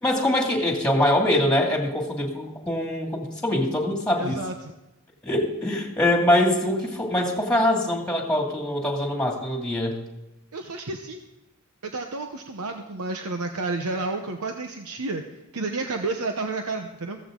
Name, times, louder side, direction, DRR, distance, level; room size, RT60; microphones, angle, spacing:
voice 1, 0.0-4.4 5.2-10.0, left 1 dB, 5° left, 1 dB, 2.3 m, -23 dB
voice 2, 4.2-4.7 10.5-11.2 11.8-15.2 15.5-17.2, right 3 dB, 90° right, 5 dB, 1.0 m, -30 dB
15.0 x 14.5 x 3.8 m, 0.97 s
head